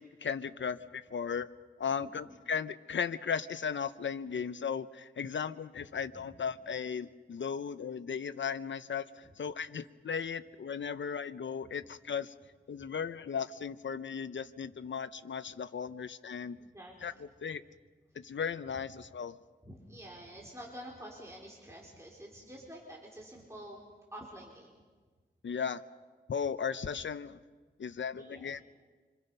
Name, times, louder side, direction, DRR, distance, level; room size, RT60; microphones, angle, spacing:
voice 1, 0.0-1.5 1.8-12.3 12.7-16.6 17.0-17.1 17.4-17.6 18.1-19.4 25.4-25.8 26.3-27.4 27.8-28.6, left 6 dB, 75° left, 13 dB, 0.8 m, -36 dB
voice 2, 16.5-17.0 19.6-23.8 24.1-24.8 28.2-28.6, equal, 15° right, -3 dB, 4.2 m, -48 dB
26.5 x 26.0 x 5.6 m, 1.4 s
wide cardioid pair, 80°, 20 cm